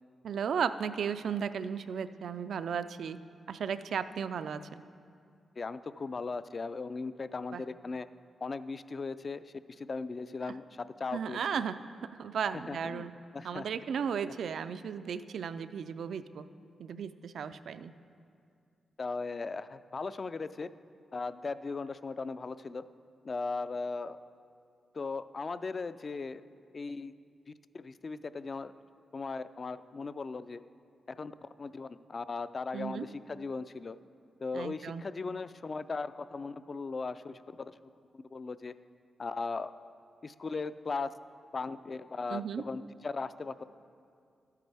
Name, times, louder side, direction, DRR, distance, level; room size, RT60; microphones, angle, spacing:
voice 1, 0.2-3.2 3.5-4.6 7.5-7.6 10.5-10.6 11.1-11.8 12.2-13.1 13.4-16.4 16.8-17.9 32.7-33.1 34.5-35.0 42.3-42.6, right 7 dB, 75° right, 12 dB, 0.3 m, -35 dB
voice 2, 5.6-8.1 8.4-11.6 12.7-13.1 13.3-13.7 19.0-20.7 21.1-22.9 23.2-24.2 24.9-26.4 26.7-27.1 27.5-28.7 29.1-30.6 31.1-34.0 34.4-37.7 38.1-38.7 39.2-39.7 40.2-41.1 41.5-43.6, left 4 dB, 40° left, 14 dB, 0.3 m, -38 dB
12.0 x 9.2 x 3.4 m, 2.3 s
cardioid pair, 85°, 0 cm